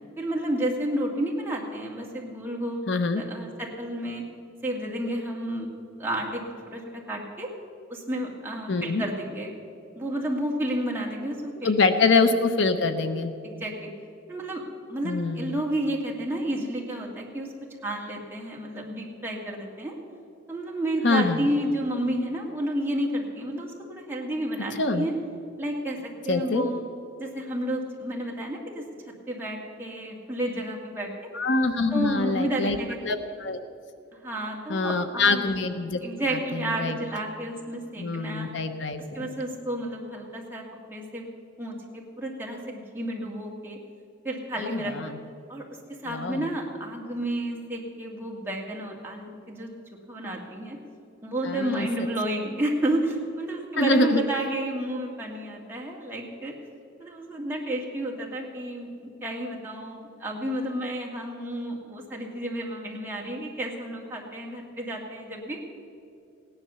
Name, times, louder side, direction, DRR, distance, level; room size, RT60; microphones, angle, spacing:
voice 1, 0.2-2.9 3.2-4.2 4.6-5.7 6.0-7.5 7.9-9.5 10.0-12.1 13.4-13.9 14.3-14.6 14.9-17.5 17.8-20.0 20.5-25.1 25.6-26.0 26.3-26.8 27.2-28.9 29.3-31.1 31.9-33.0 34.1-35.5 36.0-38.5 39.1-41.2 41.6-43.8 44.2-45.1 45.5-49.7 50.1-50.8 51.2-56.5 57.0-58.9 59.2-65.6, right 1 dB, 10° right, -2 dB, 2.0 m, -31 dB
voice 2, 2.9-3.2 8.7-9.0 11.6-13.3 15.0-15.6 21.0-21.5 24.7-25.1 26.3-26.6 31.3-32.8 33.0-33.6 34.7-36.0 36.3-37.0 38.0-39.3 44.6-45.2 46.1-46.5 51.4-51.9 53.8-54.2, left 3 dB, 65° left, 8 dB, 0.8 m, -25 dB
17.0 x 10.5 x 6.9 m, 2.5 s
head